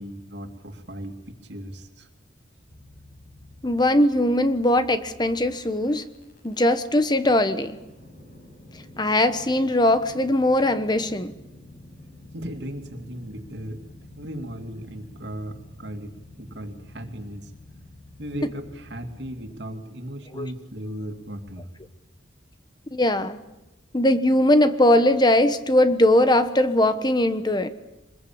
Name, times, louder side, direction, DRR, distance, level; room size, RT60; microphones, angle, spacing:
voice 1, 0.0-2.1 12.3-17.5 18.2-21.7, equal, 65° right, 6 dB, 2.6 m, -37 dB
sound 1, 2.7-19.5, left 1 dB, 50° left, 6.2 m, -48 dB
voice 2, 3.6-6.1 6.4-7.8 9.0-11.3 20.3-20.5 22.9-23.4 23.9-27.7, left 1 dB, 20° left, 11 dB, 1.1 m, -20 dB
24.0 x 21.5 x 8.7 m, 0.98 s
head